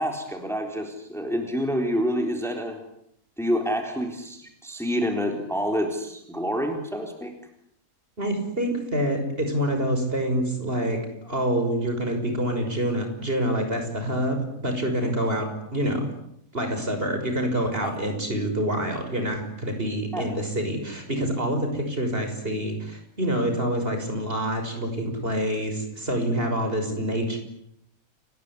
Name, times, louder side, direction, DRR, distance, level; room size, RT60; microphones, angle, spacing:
voice 1, 0.0-2.8 3.4-7.3 17.8-17.9 20.1-20.3, equal, ahead, 4 dB, 3.7 m, -28 dB
voice 2, 8.2-16.1 16.5-27.4, right 1 dB, 35° right, 5 dB, 6.4 m, -26 dB
29.5 x 20.0 x 9.8 m, 0.75 s
omnidirectional pair, 1.6 m